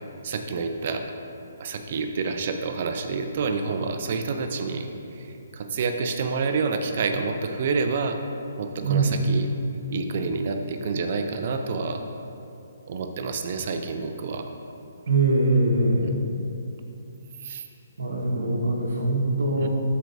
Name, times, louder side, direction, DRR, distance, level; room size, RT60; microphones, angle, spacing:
voice 1, 0.2-1.0 1.6-8.2 8.6-9.5 9.9-12.0 12.9-14.5 16.0-16.1 17.4-17.6 19.6-19.7, right 4 dB, 45° right, 6 dB, 0.5 m, -28 dB
voice 2, 8.8-9.1 15.1-16.1 18.0-19.7, right 2 dB, 85° right, -5 dB, 1.2 m, -22 dB
12.5 x 4.6 x 2.7 m, 2.7 s
hypercardioid pair, 155°, 0 cm